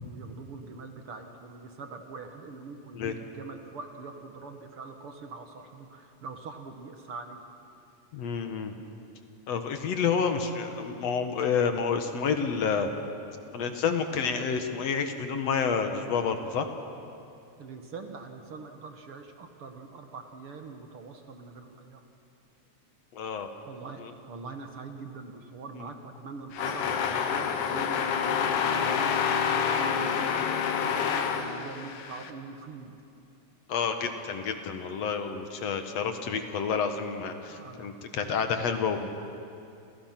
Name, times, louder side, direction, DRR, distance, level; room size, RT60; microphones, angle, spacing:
voice 1, 0.0-7.4 17.6-22.0 23.7-32.9 35.6-35.8 37.5-38.2, right 4 dB, 55° right, 5 dB, 2.2 m, -43 dB
voice 2, 8.1-8.7 9.5-12.9 13.5-16.7 23.1-23.5 24.0-24.1 25.8-25.9 33.7-39.1, left 6 dB, 65° left, 6 dB, 2.4 m, -29 dB
sound 1, 26.5-32.3, left 7 dB, 90° left, 2.9 m, -28 dB
30.0 x 28.5 x 6.0 m, 2.6 s
omnidirectional pair, 3.3 m